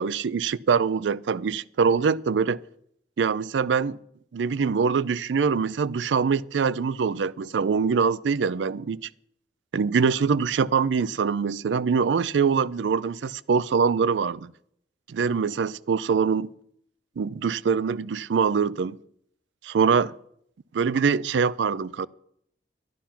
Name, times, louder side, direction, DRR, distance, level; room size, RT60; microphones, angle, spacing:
voice 1, 0.0-2.6 3.2-4.0 4.3-9.1 9.7-14.5 15.1-16.5 17.2-19.0 19.6-20.1 20.7-22.1, right 5 dB, 85° right, 0.4 m, -24 dB
12.0 x 11.5 x 5.8 m
head